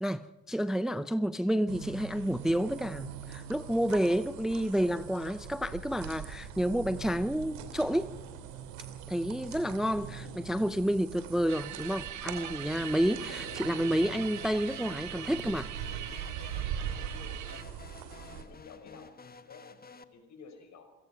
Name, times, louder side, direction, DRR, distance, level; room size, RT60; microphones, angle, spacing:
voice 1, 0.0-8.1 9.1-15.7, equal, ahead, 0.6 m, -30 dB
sound 1, 1.7-18.4, right 8 dB, 90° right, 2.9 m, -42 dB
sound 2, 11.5-17.6, right 11 dB, 60° right, 1.8 m, -42 dB
sound 3, 13.2-20.0, left 5 dB, 25° left, 1.5 m, -51 dB
voice 2, 13.3-13.7 17.2-17.5 18.2-20.8, left 5 dB, 55° left, 5.3 m, -53 dB
27.5 x 17.5 x 5.9 m
supercardioid pair, 75°, 33 cm